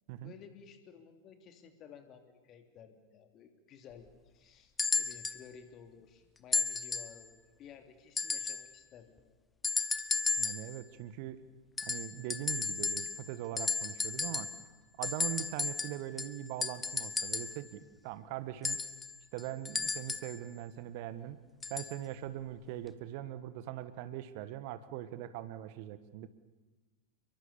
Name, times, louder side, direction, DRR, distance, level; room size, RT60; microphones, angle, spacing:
voice 1, 0.2-9.4, left 7 dB, 30° left, 6 dB, 3.1 m, -55 dB
sound 1, 4.8-5.4 6.5-7.2 8.2-8.7 9.6-10.7 11.8-13.3 13.6-14.6 15.0-17.6 18.6-20.4 21.6-22.0 22.9-23.0, left 4 dB, 15° left, 1.2 m, -34 dB
voice 2, 10.4-11.4 11.8-14.5 15.0-18.8 19.3-21.4 21.7-26.3, right 13 dB, 45° right, 13 dB, 1.4 m, -41 dB
29.5 x 23.0 x 7.1 m, 1.3 s
figure-of-eight pair, 90°, 0 cm